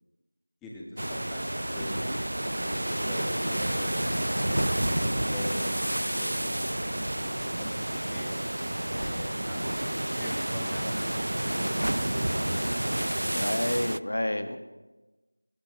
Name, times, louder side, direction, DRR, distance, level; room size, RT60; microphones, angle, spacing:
voice 1, 0.6-2.1 2.6-4.1 4.9-8.5 9.0-9.7 10.2-13.1, left 1 dB, 5° left, -4 dB, 1.1 m, -43 dB
sound 1, 1.0-14.0, right 1 dB, 70° right, 0.4 m, -29 dB
voice 2, 7.2-7.7 13.2-14.6, left 1 dB, 60° left, 7 dB, 1.8 m, -30 dB
20.5 x 20.5 x 3.2 m, 1.1 s
figure-of-eight pair, 175°, 0 cm